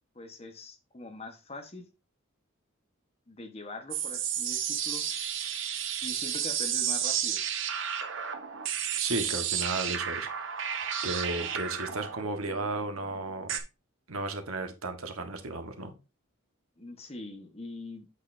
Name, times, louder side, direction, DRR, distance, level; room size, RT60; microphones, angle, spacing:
voice 1, 0.1-1.9 3.3-5.0 6.0-7.4 16.8-18.1, left 2 dB, 30° left, 1.3 m, -43 dB
sound 1, 3.9-13.6, right 8 dB, 65° right, 1.1 m, -32 dB
voice 2, 9.0-10.6 11.0-13.6 14.1-15.9, right 2 dB, 90° right, 1.4 m, -34 dB
8.2 x 6.6 x 2.7 m
head